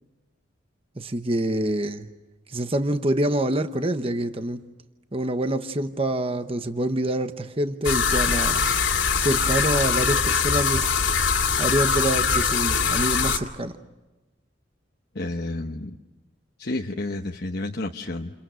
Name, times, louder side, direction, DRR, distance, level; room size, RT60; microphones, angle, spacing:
voice 1, 1.0-2.1 2.5-4.7 5.1-8.6 9.2-10.9 11.6-13.8, right 1 dB, 30° right, 1.0 m, -26 dB
sound 1, 7.8-13.4, left 5 dB, 80° left, 2.6 m, -22 dB
voice 2, 15.1-16.0 16.6-18.3, left 2 dB, 55° left, 1.1 m, -30 dB
29.5 x 29.0 x 6.4 m
head